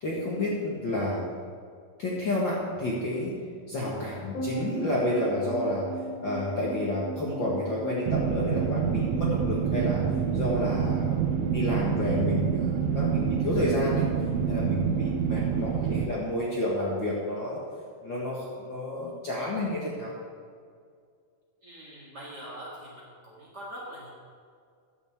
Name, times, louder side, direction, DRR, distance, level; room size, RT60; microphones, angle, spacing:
voice 1, 0.0-1.2 2.0-3.4 3.7-5.9 6.2-10.0 10.3-14.0 14.5-17.6 18.0-20.1, left 1 dB, 45° left, -5 dB, 1.8 m, -30 dB
sound 1, 4.3-16.9 17.1-17.2, right 2 dB, 65° left, 3.8 m, -38 dB
sound 2, 8.1-16.1, right 8 dB, 85° right, 1.5 m, -27 dB
voice 2, 21.6-24.1, equal, 35° right, -5 dB, 2.0 m, -43 dB
15.0 x 10.5 x 3.6 m, 2.1 s
omnidirectional pair, 3.8 m